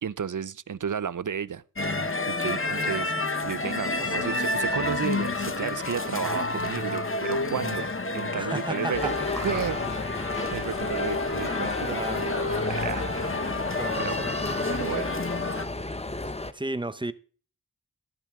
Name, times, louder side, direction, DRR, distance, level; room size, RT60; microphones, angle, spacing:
voice 1, 0.0-1.6 2.3-7.9 8.1-10.2 10.5-12.4 12.6-13.1 14.0-14.3 14.7-15.1, right 7 dB, 70° right, 0.5 m, -33 dB
sound 1, 1.8-15.6, left 2 dB, 40° left, 1.1 m, -29 dB
voice 2, 2.5-2.9 4.0-4.3 8.3-9.1 11.8-12.2 13.8-14.3 16.5-17.1, right 2 dB, 15° right, 0.7 m, -34 dB
sound 2, 8.9-16.5, left 2 dB, 20° left, 0.8 m, -33 dB
14.0 x 12.0 x 3.6 m
wide cardioid pair, 55°, 32 cm